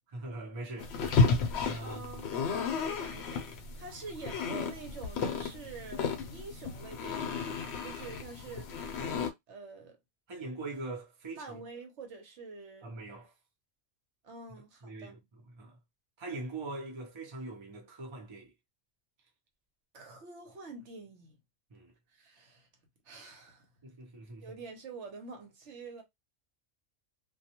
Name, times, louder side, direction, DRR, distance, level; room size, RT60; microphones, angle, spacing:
voice 1, 0.1-2.3 10.3-11.5 12.8-13.3 14.8-15.2 15.5-15.8 16.2-18.5 21.7-21.9 23.8-24.5, right 2 dB, 30° right, 0.6 m, -42 dB
sound 1, 0.8-9.3, left 4 dB, 65° left, 0.8 m, -32 dB
voice 2, 1.8-2.4 2.8-3.5 3.8-8.9 9.5-10.0 11.3-12.9 14.2-15.2 19.9-21.4 22.1-22.7 23.0-23.7 24.4-26.0, right 4 dB, 70° right, 1.0 m, -47 dB
2.3 x 2.2 x 2.8 m
omnidirectional pair, 1.3 m